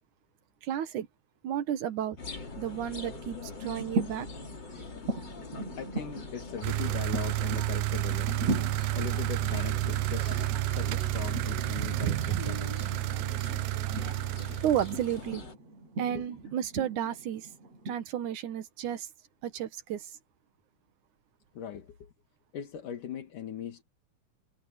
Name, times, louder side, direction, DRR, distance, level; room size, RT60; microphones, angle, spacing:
voice 1, 0.6-1.1 1.4-2.2 2.6-4.3 11.8-12.6 14.6-15.4 16.0-17.5 17.9-19.1 19.4-20.0, right 10 dB, 75° right, 2.8 m, -32 dB
sound 1, 2.2-15.6, left 4 dB, 35° left, 3.8 m, -43 dB
sound 2, 3.7-17.9, right 2 dB, 55° right, 7.7 m, -39 dB
voice 2, 5.8-8.6 8.9-13.0 16.1-16.2 21.6-22.1 22.5-23.8, left 9 dB, 80° left, 3.5 m, -40 dB
sound 3, 6.6-15.2, right 23 dB, 90° right, 2.1 m, -31 dB
omnidirectional pair, 3.6 m